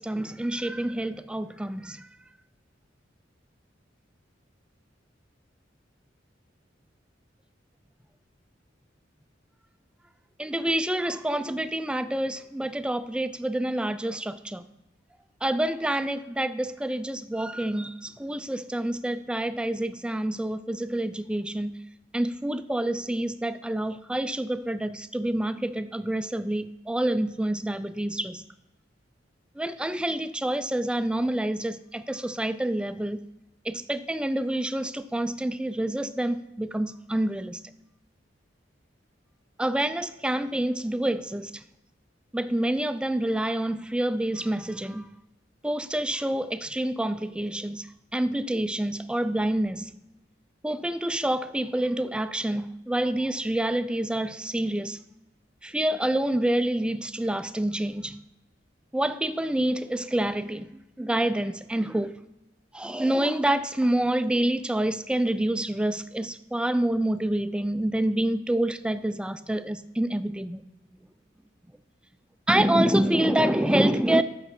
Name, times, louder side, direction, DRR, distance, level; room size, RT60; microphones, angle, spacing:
voice 1, 0.0-2.0 10.4-14.6 15.4-21.8 22.1-28.4 29.6-33.2 33.7-37.6 39.6-41.6 42.3-45.1 45.6-47.9 48.1-49.9 50.6-55.0 55.6-58.2 58.9-60.7 61.0-62.1 62.7-70.6 72.5-74.2, right 1 dB, 5° right, 0.3 m, -27 dB
10.0 x 6.6 x 4.3 m
head